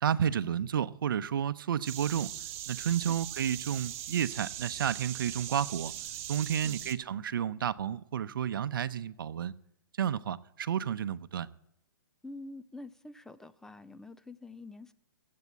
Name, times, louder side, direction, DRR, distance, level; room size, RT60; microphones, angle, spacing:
voice 1, 0.0-2.3 2.7-5.9 6.3-9.5 10.0-11.5, right 9 dB, 70° right, 0.7 m, -31 dB
sound 1, 1.8-6.9, right 12 dB, 40° right, 1.1 m, -40 dB
voice 2, 2.8-3.2 6.6-6.9 12.2-14.9, left 2 dB, 5° left, 0.4 m, -47 dB
15.0 x 8.5 x 8.1 m
hypercardioid pair, 145°, 12 cm